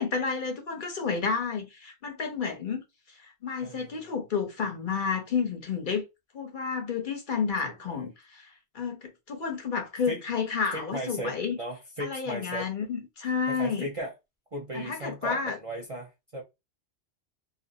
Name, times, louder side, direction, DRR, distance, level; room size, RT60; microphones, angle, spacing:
voice 1, 0.0-2.8 3.4-6.0 6.3-8.5 8.7-9.0 9.3-11.6 12.0-13.9 14.7-15.6, left 5 dB, 55° left, 0.7 m, -30 dB
voice 2, 3.6-4.1 7.6-8.1 10.1-10.2 10.7-12.7 13.5-14.1 14.5-16.4, right 1 dB, 40° right, 0.5 m, -37 dB
2.4 x 2.4 x 2.6 m
omnidirectional pair, 1.1 m